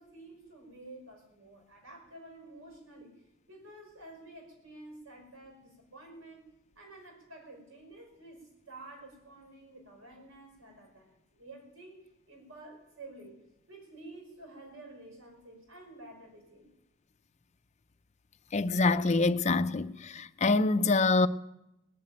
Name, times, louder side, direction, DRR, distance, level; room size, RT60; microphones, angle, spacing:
voice 1, 0.0-3.1 3.5-6.4 6.8-13.4 13.7-16.7, right 2 dB, 80° right, 5.3 m, -50 dB
voice 2, 18.5-21.3, left 3 dB, 35° left, 0.5 m, -25 dB
20.0 x 7.4 x 8.9 m
head